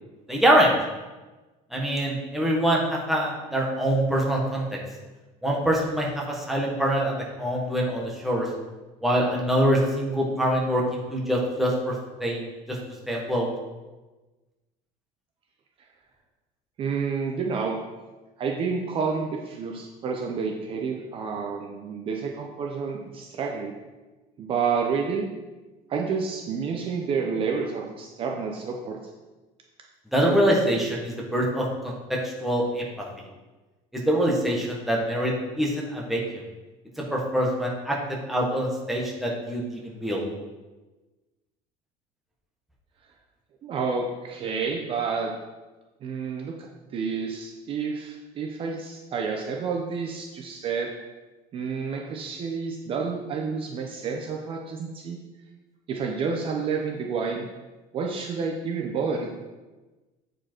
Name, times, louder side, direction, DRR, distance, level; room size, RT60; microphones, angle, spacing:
voice 1, 0.3-0.7 1.7-4.6 5.4-8.5 9.0-11.9 12.2-12.8 13.1-13.5 30.1-32.9 34.0-36.2 37.1-38.0 38.3-40.2, equal, ahead, -3 dB, 1.4 m, -24 dB
voice 2, 16.8-17.8 18.4-23.7 24.4-25.3 25.9-29.0 43.6-45.3 46.0-46.7 46.9-50.9 51.5-55.2 55.9-57.5 57.9-59.3, right 5 dB, 35° right, 1 dB, 0.7 m, -29 dB
8.6 x 5.0 x 4.5 m, 1.2 s
cardioid pair, 160°, 16 cm